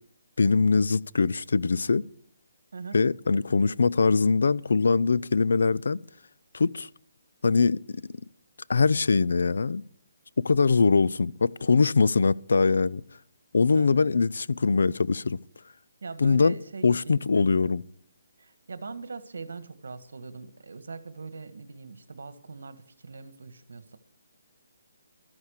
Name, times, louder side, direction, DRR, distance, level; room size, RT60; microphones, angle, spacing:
voice 1, 0.4-2.0 2.9-6.0 6.5-6.9 7.4-8.0 8.7-9.8 10.4-13.0 13.5-15.4 16.2-16.5 16.8-17.8, left 4 dB, 75° left, 0.5 m, -22 dB
voice 2, 13.7-14.1 16.0-17.8 18.4-24.0, right 4 dB, 75° right, 1.7 m, -41 dB
13.5 x 11.0 x 6.6 m
hypercardioid pair, 165°, 0 cm